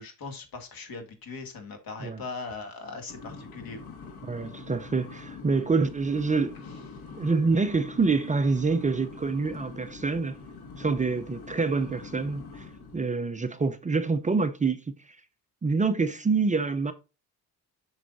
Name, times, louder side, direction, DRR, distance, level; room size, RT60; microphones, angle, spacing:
voice 1, 0.0-3.8 6.9-7.0, left 4 dB, 65° left, 2.3 m, -40 dB
sound 1, 3.1-13.1, left 3 dB, 90° left, 1.8 m, -44 dB
voice 2, 4.2-6.6 7.2-10.4 10.8-12.7 12.9-15.2 15.6-16.9, right 4 dB, 20° right, 0.5 m, -26 dB
7.9 x 6.2 x 2.6 m
cardioid pair, 140°, 37 cm